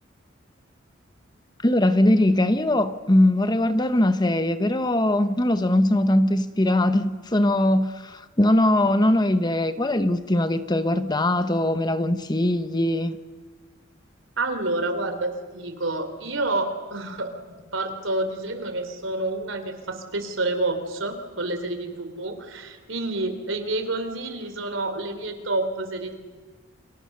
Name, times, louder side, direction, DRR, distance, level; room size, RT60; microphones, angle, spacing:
voice 1, 1.6-13.2, left 1 dB, 20° left, 1.0 m, -21 dB
voice 2, 14.4-17.3 17.6-26.1, right 2 dB, 70° right, 3.7 m, -28 dB
30.0 x 26.5 x 6.8 m
head